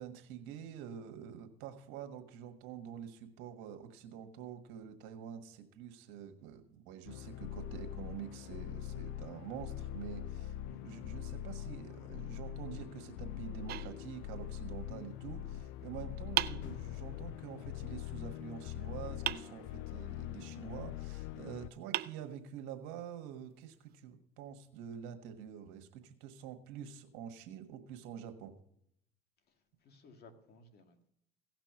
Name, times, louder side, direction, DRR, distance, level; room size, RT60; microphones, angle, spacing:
voice 1, 0.0-28.5, right 9 dB, 75° right, 7 dB, 1.5 m, -47 dB
sound 1, 7.0-21.7, left 12 dB, 75° left, 0.4 m, -43 dB
voice 2, 10.7-11.4 16.1-16.3 29.5-31.0, left 2 dB, 50° left, 6 dB, 2.0 m, -60 dB
sound 2, 13.7-14.7 16.4-17.4 19.3-20.2 21.3-21.4 21.9-22.9, right 14 dB, 50° right, 0.4 m, -39 dB
16.5 x 6.0 x 5.9 m, 0.73 s
supercardioid pair, 95°, 20 cm